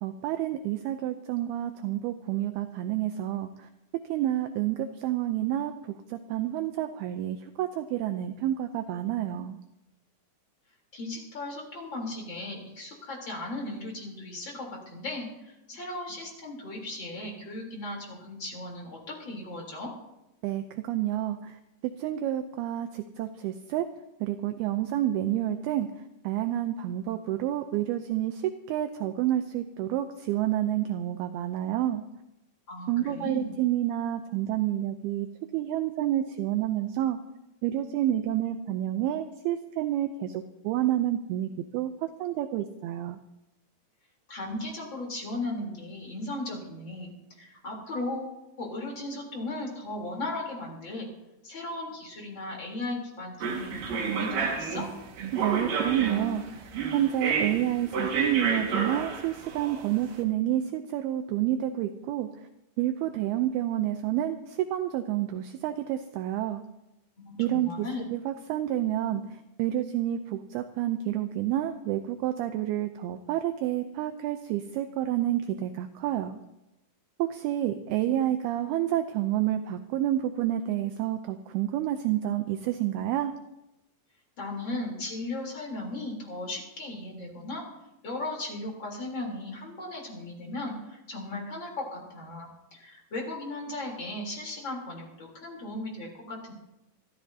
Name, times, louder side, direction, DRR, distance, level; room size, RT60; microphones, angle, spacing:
voice 1, 0.0-3.7 4.1-9.6 20.4-23.9 24.2-25.9 26.2-32.0 32.9-35.3 35.5-37.2 37.6-43.2 55.3-56.6 56.9-62.3 62.8-66.6 67.4-67.9 68.1-76.4 77.2-83.3, right 12 dB, 80° right, 8 dB, 2.4 m, -29 dB
voice 2, 10.9-19.9 32.7-33.5 44.3-51.1 51.4-54.9 67.2-68.0 84.4-87.6 88.0-96.5, left 2 dB, 30° left, -1 dB, 3.8 m, -37 dB
sound 1, 53.4-60.1, right 5 dB, 60° right, 3.1 m, -30 dB
27.0 x 13.5 x 2.8 m, 0.92 s
omnidirectional pair, 4.9 m